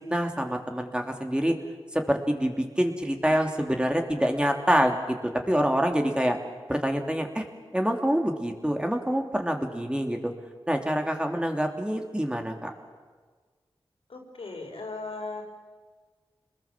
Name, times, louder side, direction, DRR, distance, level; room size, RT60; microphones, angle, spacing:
voice 1, 0.0-1.6 1.9-5.2 5.5-6.4 6.7-7.4 7.7-10.3 10.7-12.7, equal, 10° right, 3 dB, 3.0 m, -26 dB
voice 2, 14.1-15.4, left 3 dB, 85° left, 1 dB, 5.1 m, -37 dB
28.0 x 21.0 x 7.5 m, 1.5 s
wide cardioid pair, 55°, 9 cm